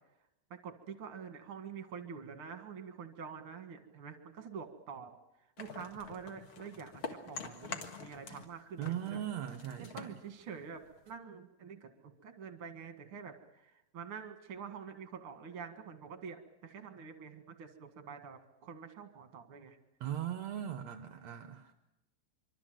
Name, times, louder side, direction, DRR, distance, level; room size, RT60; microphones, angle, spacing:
voice 1, 0.5-5.2 5.6-9.2 9.8-19.8, right 6 dB, 45° right, 7 dB, 2.1 m, -47 dB
sound 1, 5.6-8.5 8.8-11.2, left 5 dB, 45° left, 1.9 m, -46 dB
voice 2, 8.8-10.1 20.0-21.7, right 10 dB, 70° right, 7 dB, 1.7 m, -39 dB
25.5 x 24.5 x 7.7 m, 0.96 s
omnidirectional pair, 4.5 m